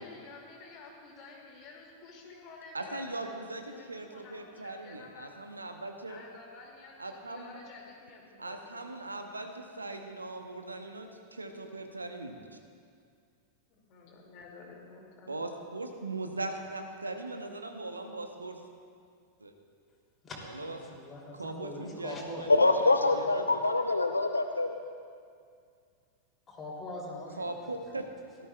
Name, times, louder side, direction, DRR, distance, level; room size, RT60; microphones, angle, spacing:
voice 1, 0.0-3.4 3.7-5.3 6.1-8.8 13.7-15.4, left 3 dB, 40° left, -1 dB, 2.4 m, -51 dB
voice 2, 2.7-6.2 7.0-7.6 8.4-12.6 15.3-18.6 19.4-19.5 20.4-20.8 21.3-22.5 22.8-23.6 27.4-28.0, right 2 dB, 80° right, 5 dB, 0.9 m, -39 dB
voice 3, 20.2-22.5 23.5-23.7 26.5-27.7, left 2 dB, 20° left, -3 dB, 3.0 m, -42 dB
voice 4, 22.5-24.8, left 2 dB, 80° left, 7 dB, 0.5 m, -25 dB
17.0 x 12.5 x 2.3 m, 2.2 s
figure-of-eight pair, 90°, 0 cm